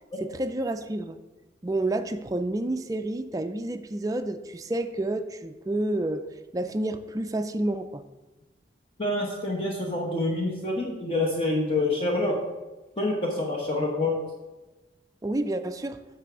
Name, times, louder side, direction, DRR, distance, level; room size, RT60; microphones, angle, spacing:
voice 1, 0.2-1.2 1.6-6.2 6.5-8.0 15.2-16.0, right 1 dB, 20° right, 8 dB, 0.4 m, -29 dB
voice 2, 9.0-12.3 13.0-14.2, left 2 dB, 30° left, -1 dB, 1.0 m, -27 dB
8.7 x 3.4 x 6.0 m, 1.1 s
head